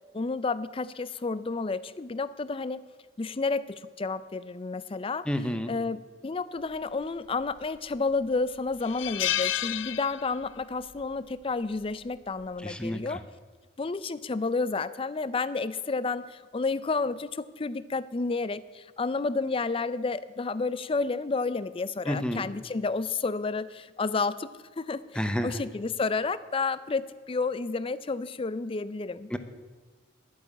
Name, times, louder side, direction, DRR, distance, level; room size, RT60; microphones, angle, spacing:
voice 1, 0.1-2.8 3.2-5.3 5.7-13.2 13.8-24.5 24.8-29.3, left 4 dB, 30° left, 16 dB, 0.4 m, -31 dB
voice 2, 5.3-5.7 12.6-13.2 22.1-22.4 25.2-25.5 29.3-29.4, equal, 5° left, 8 dB, 0.8 m, -30 dB
sound 1, 7.4-7.9 8.3-8.4 8.8-10.6 10.9-11.1 12.4-12.7, left 12 dB, 80° left, 0.5 m, -31 dB
11.0 x 8.5 x 8.5 m, 1.4 s
head